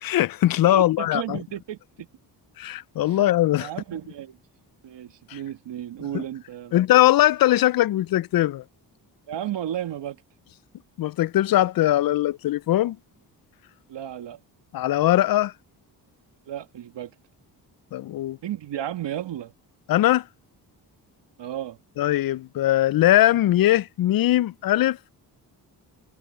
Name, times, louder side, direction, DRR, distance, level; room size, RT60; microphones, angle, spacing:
voice 1, 0.0-1.4 2.6-3.7 5.3-5.4 6.1-6.2 6.7-8.6 11.0-13.0 14.7-15.5 17.9-18.4 19.9-20.2 22.0-25.0, left 14 dB, 55° left, 0.5 m, -20 dB
voice 2, 0.7-2.1 3.1-3.3 3.6-4.4 4.8-6.7 9.3-10.2 13.9-14.4 16.5-17.1 18.4-19.5 21.4-21.8, right 11 dB, 80° right, 1.6 m, -33 dB
cardioid pair, 75°, 42 cm